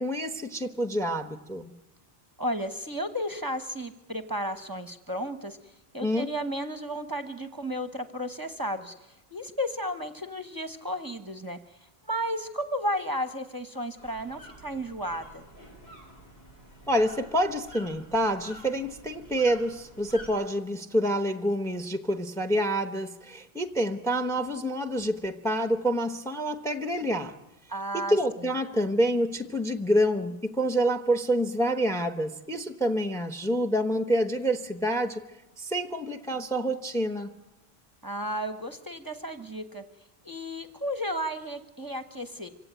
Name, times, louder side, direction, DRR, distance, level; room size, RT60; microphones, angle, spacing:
voice 1, 0.0-1.7 6.0-6.3 16.9-27.3 27.9-35.2 35.6-37.3, equal, 5° left, 8 dB, 1.0 m, -27 dB
voice 2, 2.4-5.6 5.9-8.9 9.3-11.6 12.1-15.4 27.7-28.5 38.0-39.8 40.2-42.5, equal, 20° right, 8 dB, 1.1 m, -33 dB
sound 1, 14.0-20.3, equal, 80° left, 5.4 m, -49 dB
25.5 x 16.5 x 9.1 m, 0.95 s
omnidirectional pair, 1.0 m